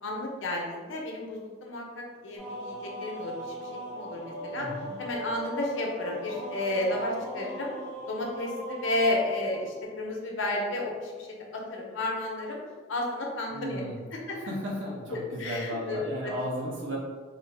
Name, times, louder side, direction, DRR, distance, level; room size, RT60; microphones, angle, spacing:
voice 1, 0.0-4.7 5.0-7.7 8.1-11.3 11.5-12.6 12.9-13.8 14.3-14.4 15.1-16.3, left 2 dB, 80° left, -1 dB, 0.7 m, -32 dB
sound 1, 2.4-10.0, equal, 20° left, 1.1 m, -39 dB
voice 2, 4.6-4.9 13.5-14.0 14.3-17.0, equal, 75° right, -3 dB, 0.8 m, -34 dB
4.0 x 2.0 x 3.3 m, 1.5 s
head